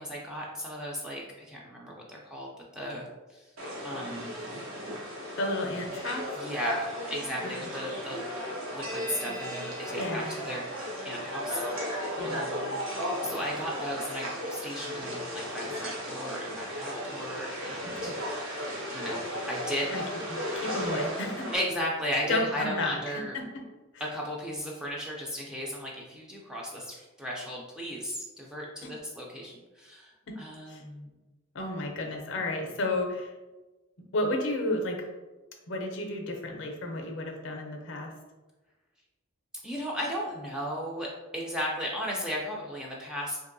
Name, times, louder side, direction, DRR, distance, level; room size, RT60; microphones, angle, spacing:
voice 1, 0.0-3.1 3.3-3.4 3.8-4.4 6.4-8.3 8.7-10.7 11.0-12.8 13.2-18.6 18.9-19.2 19.5-19.9 21.5-23.4 24.0-31.2 39.6-43.4, equal, 5° right, -3 dB, 0.3 m, -35 dB
sound 1, 3.6-21.6, equal, 80° right, 0.8 m, -35 dB
voice 2, 5.4-6.2 7.6-7.7 9.9-10.3 12.2-12.4 18.0-18.1 19.9-20.0 20.5-21.5 22.3-23.6 28.8-28.9 30.3-30.4 30.7-30.8 31.5-33.3 34.1-35.1 35.7-38.1, left 2 dB, 60° left, 2 dB, 0.5 m, -32 dB
2.9 x 2.6 x 2.5 m, 1.2 s
head